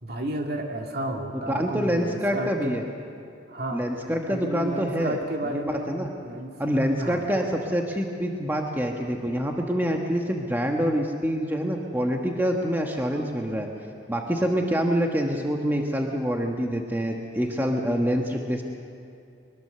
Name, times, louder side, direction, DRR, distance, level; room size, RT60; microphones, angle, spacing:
voice 1, 0.0-2.7 3.5-3.9 4.3-5.9 6.2-6.6 7.0-7.3, right 1 dB, 55° right, 2 dB, 2.4 m, -32 dB
voice 2, 1.5-2.8 3.7-5.2 5.9-6.1 6.6-13.7 14.1-18.6, equal, 10° right, 1 dB, 1.3 m, -26 dB
22.5 x 22.0 x 6.8 m, 2.6 s
head